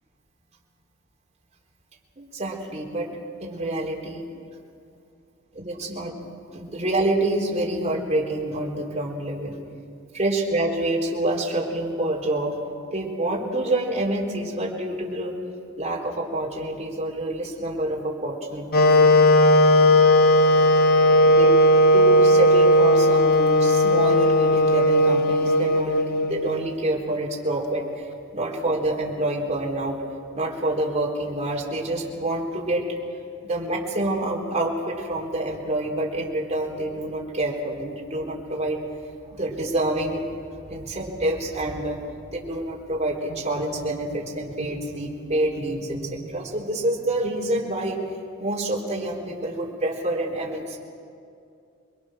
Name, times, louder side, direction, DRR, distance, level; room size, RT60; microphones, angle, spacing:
voice 1, 2.2-3.1 3.4-4.2 5.5-6.2 6.5-9.6 10.1-12.6 12.9-15.3 15.8-18.9 21.3-21.5 21.9-30.0 30.4-32.9 33.4-38.8 39.2-40.3 40.7-42.0 42.3-48.0 48.4-50.8, right 1 dB, 35° right, -2 dB, 3.8 m, -27 dB
Wind instrument woodwind instrument, 18.7-26.7, left 1 dB, 50° left, 1.1 m, -17 dB
27.5 x 22.0 x 6.3 m, 2.4 s
head